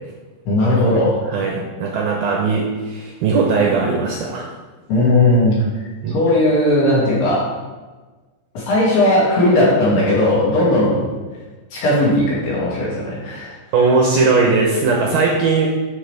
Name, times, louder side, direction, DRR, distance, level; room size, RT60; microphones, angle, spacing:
voice 1, 0.5-1.2 4.9-5.5 6.1-7.5 8.5-11.1 11.7-13.5, left 1 dB, 60° left, -7 dB, 4.2 m, -17 dB
voice 2, 1.3-4.5 6.0-6.2 13.7-15.7, right 4 dB, 75° right, -1 dB, 2.2 m, -18 dB
12.0 x 6.0 x 3.5 m, 1.3 s
omnidirectional pair, 5.5 m